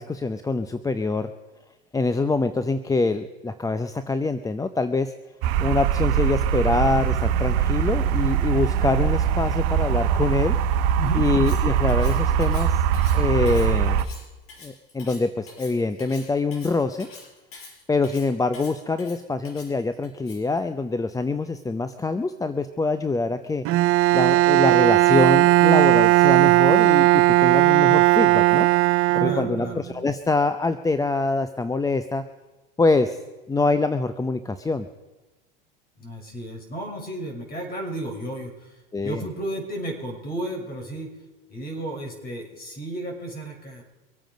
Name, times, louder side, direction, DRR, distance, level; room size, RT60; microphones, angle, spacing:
voice 1, 0.0-1.3 1.9-5.1 5.6-10.6 11.2-12.8 13.1-14.0 14.6-17.1 17.9-23.6 24.1-28.7 29.1-32.3 32.8-33.2 33.5-34.9 38.9-39.2, left 3 dB, 10° left, 11 dB, 0.7 m, -25 dB
sound 1, 5.4-14.1, right 8 dB, 60° right, 1.0 m, -22 dB
Cutlery silverware, 11.3-20.6, left 3 dB, 50° left, 5.4 m, -45 dB
Bowed string instrument, 23.6-29.8, right 17 dB, 45° right, 0.7 m, -17 dB
voice 2, 29.2-29.8 36.0-41.1 41.5-43.8, right 1 dB, 30° left, 2 dB, 5.9 m, -33 dB
24.5 x 9.1 x 5.2 m, 1.2 s
hypercardioid pair, 90°, 29 cm